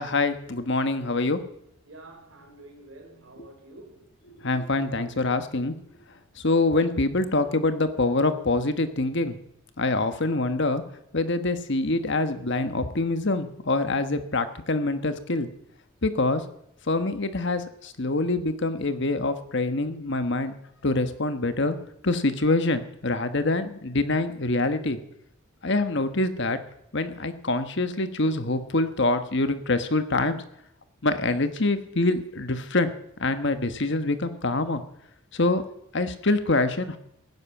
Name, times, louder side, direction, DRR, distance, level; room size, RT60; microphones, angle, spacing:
voice 1, 0.0-1.4 4.4-5.7 6.4-9.4 9.8-10.8 11.1-15.5 16.0-16.4 16.9-20.6 20.8-21.8 22.0-25.0 25.6-26.6 26.9-30.4 31.0-32.9 33.2-34.8 35.3-35.6 35.9-37.0, left 2 dB, 55° left, 1.3 m, -25 dB
voice 2, 1.9-4.2, right 2 dB, 65° right, 3.9 m, -48 dB
16.5 x 10.5 x 7.3 m
head